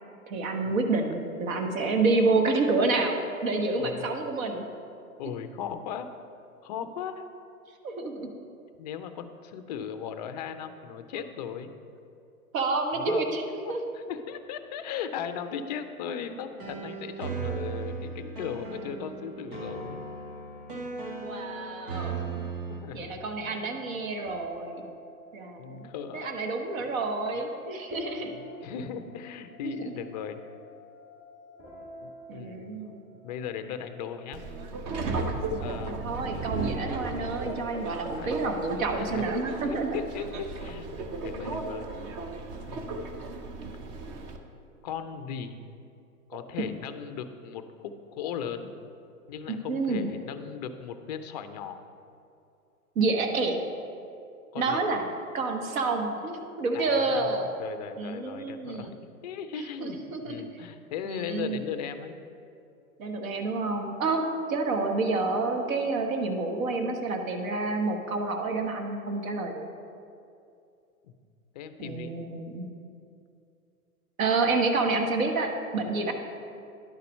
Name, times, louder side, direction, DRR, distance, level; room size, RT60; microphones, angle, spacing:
voice 1, 0.3-4.6 7.8-8.3 12.5-13.4 13.7-13.8 21.2-22.5 22.9-24.8 25.3-28.3 29.6-30.0 32.3-33.0 35.0-40.0 49.7-50.1 52.9-53.6 54.5-55.1 55.3-57.5 58.0-58.9 59.6-60.4 61.1-61.7 63.0-69.6 71.8-72.7 74.2-76.1, right 3 dB, 65° right, 4 dB, 1.2 m, -29 dB
voice 2, 3.8-4.1 5.2-6.1 6.6-7.3 8.8-11.7 12.9-13.3 13.7-20.0 22.7-23.2 23.4-23.9 25.6-26.5 26.8-26.9 28.3-30.4 32.0-32.8 33.2-34.4 35.3-36.1 38.1-38.6 39.0-39.3 39.7-41.9 42.6-43.2 44.8-45.6 46.3-48.8 49.3-51.8 54.5-54.8 56.7-57.3 57.6-62.2 71.0-71.1 71.5-72.1, left 7 dB, 30° left, 9 dB, 0.4 m, -38 dB
sound 1, 16.3-22.8, right 4 dB, 85° right, 1.6 m, -37 dB
sound 2, 24.2-37.5, left 1 dB, 5° right, 1.2 m, -49 dB
Subway metro underground, 34.3-44.4, right 3 dB, 25° right, 0.5 m, -35 dB
10.5 x 4.1 x 5.3 m, 2.6 s
hypercardioid pair, 120°, 44 cm